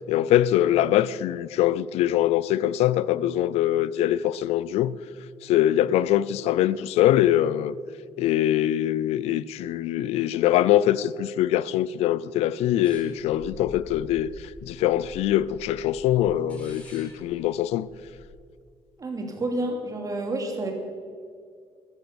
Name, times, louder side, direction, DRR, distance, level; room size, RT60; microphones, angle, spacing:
voice 1, 0.1-5.0 5.4-7.8 8.2-17.9, left 12 dB, 85° left, 0.4 m, -23 dB
sound 1, 12.8-18.3, left 2 dB, 10° left, 4.5 m, -47 dB
voice 2, 19.0-20.7, right 2 dB, 35° right, 2.8 m, -29 dB
13.0 x 10.5 x 6.9 m
cardioid pair, 100°, 10 cm